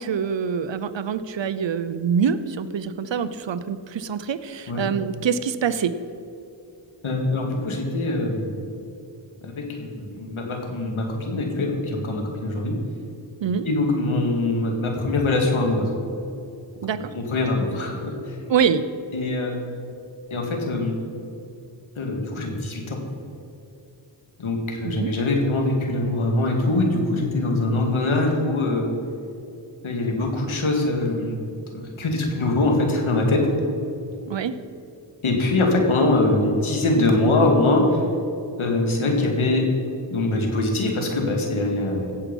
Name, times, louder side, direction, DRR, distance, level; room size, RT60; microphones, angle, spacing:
voice 1, 0.0-5.9 13.4-13.7 16.8-17.1 18.5-18.8 24.8-25.1 34.3-34.5, right 7 dB, 65° right, 13 dB, 0.8 m, -25 dB
voice 2, 7.0-8.6 9.4-12.8 13.7-15.9 16.9-18.4 19.1-19.8 20.3-21.0 22.0-23.0 24.4-28.9 29.8-31.4 31.7-33.5 35.2-38.0 38.6-39.7 40.1-42.1, left 2 dB, 85° left, 2 dB, 2.1 m, -23 dB
16.5 x 7.6 x 5.4 m, 2.7 s
cardioid pair, 45°, 47 cm